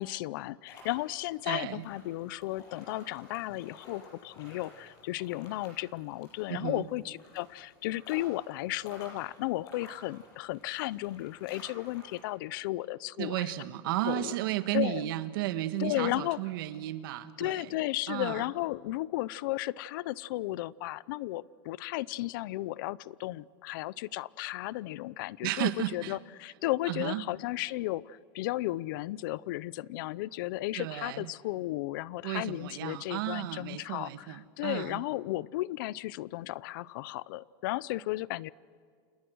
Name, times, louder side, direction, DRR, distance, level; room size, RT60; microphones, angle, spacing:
voice 1, 0.0-13.5 14.1-14.4 14.7-15.1 15.8-16.4 17.4-38.5, left 17 dB, 65° left, 21 dB, 0.6 m, -34 dB
sound 1, 0.7-12.2, left 2 dB, 35° left, 7.3 m, -53 dB
voice 2, 1.5-1.8 6.5-6.8 13.2-17.7 18.1-18.4 25.4-26.2 26.9-27.2 30.8-31.3 32.2-35.0, right 15 dB, 70° right, 12 dB, 1.4 m, -33 dB
29.5 x 27.0 x 6.3 m, 2.1 s
supercardioid pair, 170°, 12 cm